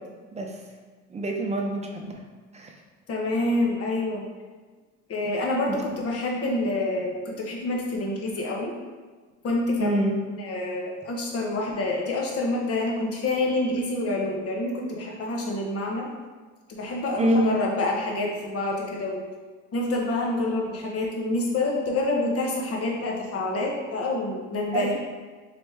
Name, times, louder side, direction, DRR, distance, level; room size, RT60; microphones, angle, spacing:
voice 1, 1.1-2.2 2.5-2.7 9.8-10.2 17.2-17.6 24.7-25.0, right 1 dB, 20° right, 1 dB, 0.7 m, -25 dB
voice 2, 3.1-4.2 5.1-8.7 9.4-10.0 10.4-16.1 16.7-19.2 19.7-25.0, left 2 dB, 45° left, -1 dB, 1.1 m, -27 dB
4.1 x 3.1 x 3.4 m, 1.4 s
supercardioid pair, 80°, 33 cm